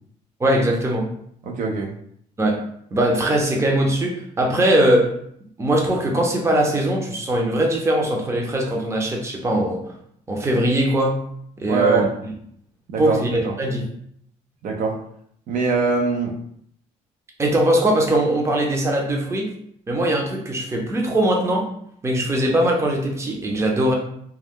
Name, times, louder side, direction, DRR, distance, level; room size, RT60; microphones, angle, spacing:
voice 1, 0.4-1.1 2.4-2.6 2.9-5.1 5.6-9.8 10.3-11.2 11.6-12.3 13.0-13.8 17.4-19.5 19.9-21.7 22.0-23.9, right 1 dB, 20° right, 0 dB, 0.6 m, -20 dB
voice 2, 1.5-1.9 11.7-12.0 12.9-13.5 14.6-14.9 15.5-16.3, right 4 dB, 60° right, 0 dB, 0.6 m, -22 dB
2.3 x 2.1 x 3.5 m, 0.67 s
cardioid pair, 95°, 15 cm